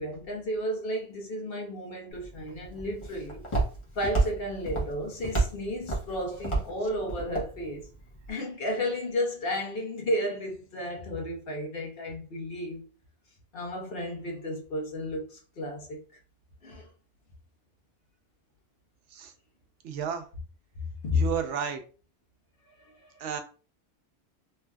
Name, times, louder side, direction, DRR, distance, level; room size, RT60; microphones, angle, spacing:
voice 1, 0.0-3.4 3.9-7.9 8.3-12.9 13.5-16.0 16.6-16.9 21.0-21.3 22.8-23.1, left 1 dB, 55° left, 1.0 m, -32 dB
Walk footsteps, 2.1-8.3, right 3 dB, 30° left, 0.9 m, -32 dB
voice 2, 19.8-20.2 21.1-21.8 23.2-23.4, right 7 dB, 85° right, 0.9 m, -32 dB
3.1 x 2.5 x 2.2 m
omnidirectional pair, 1.2 m